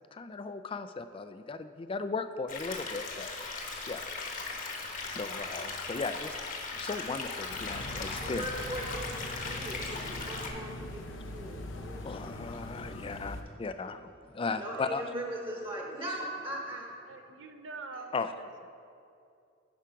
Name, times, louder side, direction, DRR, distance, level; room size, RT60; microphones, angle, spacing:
voice 1, 0.1-3.3 3.9-4.1 5.1-6.4 6.7-8.5 9.9-10.0 12.0-15.0 18.1-18.3, left 4 dB, 25° left, 10 dB, 0.3 m, -36 dB
sound 1, 2.5-10.5, left 3 dB, 45° left, 1.1 m, -38 dB
sound 2, 7.5-13.4, left 1 dB, 75° left, 0.8 m, -42 dB
voice 2, 8.2-12.8 14.5-17.1 17.9-18.0, right 1 dB, 25° right, -1 dB, 1.1 m, -40 dB
voice 3, 17.1-18.7, right 3 dB, 70° right, 6 dB, 0.7 m, -45 dB
10.5 x 4.9 x 5.8 m, 2.5 s
head